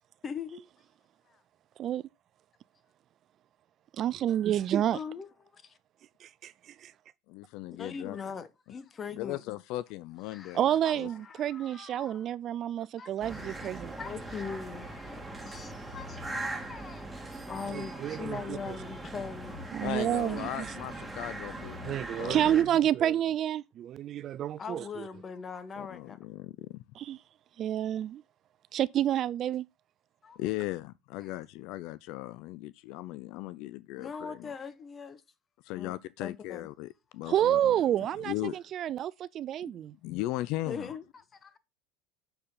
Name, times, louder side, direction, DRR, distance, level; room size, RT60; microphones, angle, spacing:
voice 1, 0.2-0.7 1.3-1.4 4.9-5.8 7.8-9.4 10.3-10.6 10.8-12.3 12.8-13.7 14.0-17.1 17.5-19.8 20.4-20.7 22.1-22.2 24.6-26.2 30.2-30.4 34.0-35.2 35.7-35.9 36.2-36.7 40.7-41.6, left 5 dB, 30° left, 1.1 m, -41 dB
voice 2, 4.0-5.0 6.2-6.5 6.8-6.9 10.5-13.9 17.7-18.7 19.7-20.7 21.8-25.1 27.0-27.2 27.6-28.2 28.7-29.6 37.3-39.9, right 11 dB, 45° right, 0.3 m, -29 dB
voice 3, 7.3-8.2 9.1-11.1 19.8-22.7 25.8-26.8 30.4-34.5 35.6-37.8 38.2-38.6 39.6-39.7 40.0-40.9, left 16 dB, 60° left, 0.4 m, -38 dB
sound 1, 13.2-22.6, right 2 dB, 10° right, 2.0 m, -40 dB
6.7 x 4.4 x 5.6 m
hypercardioid pair, 80°, 0 cm